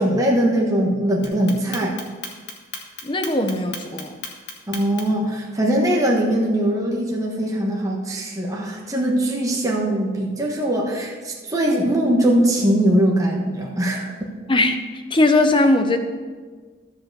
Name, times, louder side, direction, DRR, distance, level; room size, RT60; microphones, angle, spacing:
voice 1, 0.0-1.9 4.7-14.1, right 1 dB, 15° right, -2 dB, 1.3 m, -21 dB
Clock, 1.2-5.2, left 5 dB, 55° left, 1.6 m, -34 dB
voice 2, 3.0-4.1 14.5-14.8 15.1-16.0, left 2 dB, 25° left, 7 dB, 0.8 m, -19 dB
13.5 x 5.0 x 6.8 m, 1.5 s
head